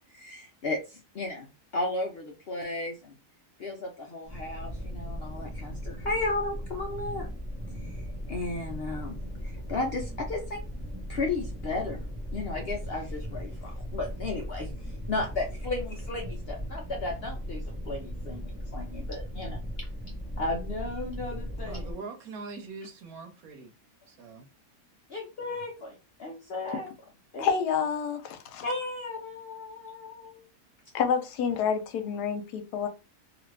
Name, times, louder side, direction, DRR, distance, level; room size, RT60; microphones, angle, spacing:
voice 1, 0.1-1.5 1.7-3.1 3.6-7.3 7.8-10.6 11.1-12.0 12.3-14.7 15.1-19.9 20.4-21.9 25.1-26.9 27.3-27.5 28.6-30.4, left 2 dB, 60° left, 0.6 m, -34 dB
sound 1, 4.2-21.9, equal, 15° right, 0.4 m, -37 dB
voice 2, 21.6-23.7 24.1-24.5, right 4 dB, 70° right, 1.2 m, -42 dB
voice 3, 27.4-28.6 30.9-32.9, left 7 dB, 85° left, 1.2 m, -28 dB
2.8 x 2.5 x 3.2 m
omnidirectional pair, 1.7 m